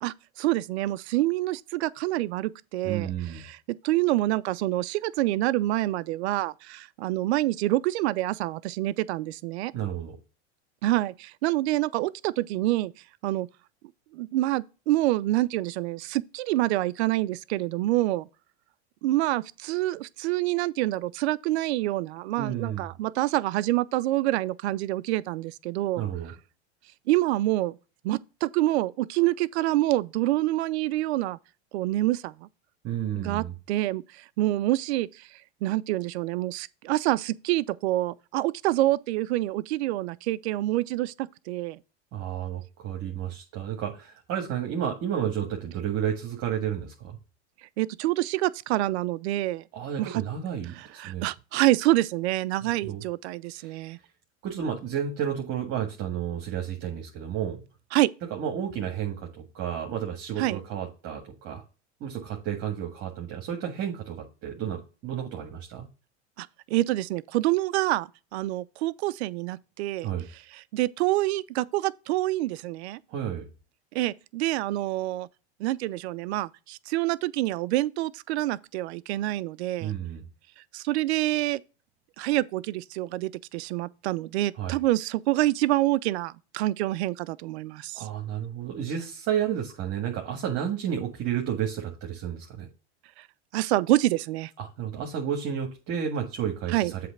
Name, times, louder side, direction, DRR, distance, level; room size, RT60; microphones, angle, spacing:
voice 1, 0.0-9.7 10.8-12.9 13.2-13.5 14.1-18.3 19.0-26.1 27.1-27.8 28.0-31.4 31.7-32.5 33.2-35.3 35.6-41.8 47.8-49.6 50.0-50.2 50.8-54.0 57.9-58.1 60.4-60.6 66.4-70.1 70.5-73.0 73.9-75.3 75.6-79.9 80.7-81.6 82.2-88.1 93.2-93.3 93.5-94.5 96.7-96.9, right 16 dB, 70° right, 0.6 m, -27 dB
voice 2, 2.8-3.4 9.7-10.2 22.4-22.9 26.0-26.3 32.8-33.5 42.1-47.2 49.7-51.3 52.6-53.0 53.6-53.8 54.4-57.6 58.3-61.6 62.0-65.9 70.0-70.3 73.1-73.5 79.8-80.2 84.6-84.8 87.9-92.7 94.6-97.0, right 9 dB, 45° right, 1.8 m, -31 dB
7.8 x 3.4 x 6.5 m
hypercardioid pair, 115°, 34 cm